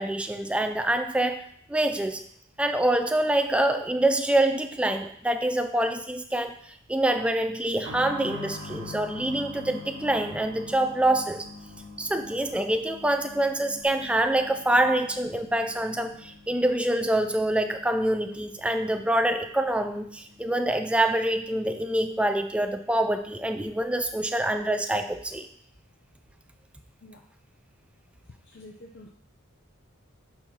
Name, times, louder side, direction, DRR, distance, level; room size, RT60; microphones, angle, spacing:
voice 1, 0.0-2.2 2.6-11.5 12.0-25.5, right 1 dB, 5° right, 7 dB, 0.3 m, -26 dB
sound 1, 7.8-22.3 22.5-22.6 23.6-23.7, left 2 dB, 65° right, 1.5 m, -45 dB
voice 2, 28.5-29.1, left 1 dB, 50° left, 1 dB, 0.6 m, -47 dB
8.9 x 4.5 x 2.9 m, 0.66 s
head